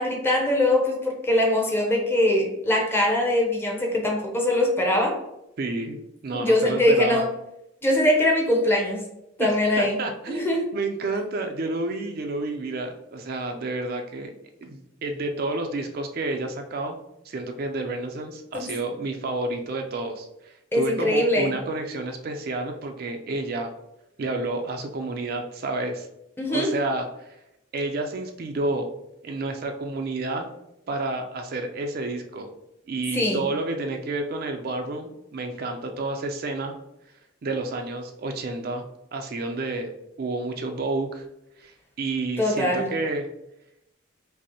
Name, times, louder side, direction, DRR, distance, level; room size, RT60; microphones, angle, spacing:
voice 1, 0.0-5.2 6.3-7.3 7.8-9.0 9.4-9.9 10.3-10.6 18.5-18.7 20.7-21.5 26.4-26.7 33.1-33.4 42.4-42.9, left 1 dB, 10° left, -1 dB, 0.6 m, -22 dB
voice 2, 5.6-6.0 6.2-7.2 9.4-10.5 10.7-14.3 14.6-17.0 17.2-23.7 24.2-26.1 26.5-27.1 27.7-28.9 29.2-30.5 30.9-32.5 32.9-36.8 37.4-38.8 39.1-39.9 40.2-41.2 41.6-41.7 42.0-43.3, right 2 dB, 50° right, 4 dB, 0.4 m, -30 dB
5.1 x 2.0 x 2.9 m, 0.85 s
head